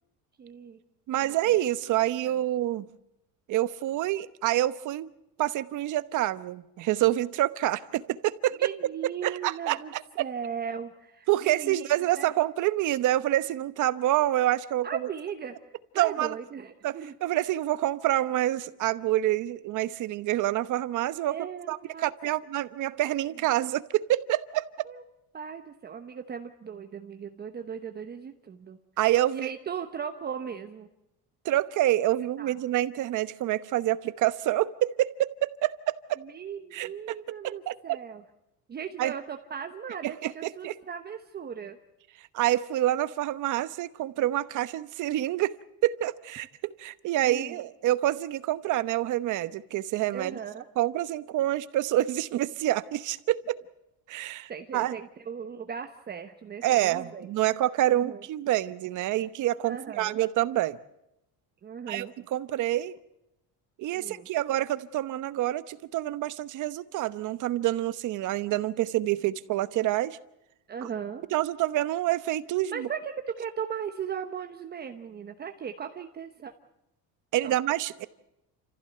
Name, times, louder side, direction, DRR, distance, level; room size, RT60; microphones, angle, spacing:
voice 1, 0.4-0.8 1.2-1.3 8.6-9.9 10.2-12.3 14.8-15.6 15.9-17.1 21.3-22.3 22.9-23.3 24.8-25.0 25.3-28.8 29.3-30.9 32.2-32.6 36.2-38.2 38.7-41.8 47.2-47.6 50.1-50.7 54.2-57.3 57.9-58.2 59.7-60.2 61.6-62.1 63.9-64.3 70.7-71.3 72.7-76.5 77.4-77.5, right 7 dB, 25° right, 6 dB, 1.0 m, -38 dB
voice 2, 1.1-2.9 3.5-5.1 5.4-8.7 9.2-10.3 11.3-14.9 16.0-16.4 16.8-21.4 21.7-24.9 29.0-29.5 31.4-35.3 35.6-36.2 36.7-38.0 39.0-39.1 40.0-40.8 42.3-45.5 45.8-46.5 46.8-50.4 50.8-53.6 54.1-54.9 56.6-60.8 61.9-63.0 63.8-70.2 70.8-70.9 71.3-72.9 77.3-78.1, right 14 dB, 50° right, 14 dB, 1.0 m, -27 dB
29.0 x 15.5 x 7.8 m, 0.86 s
cardioid pair, 160°, 39 cm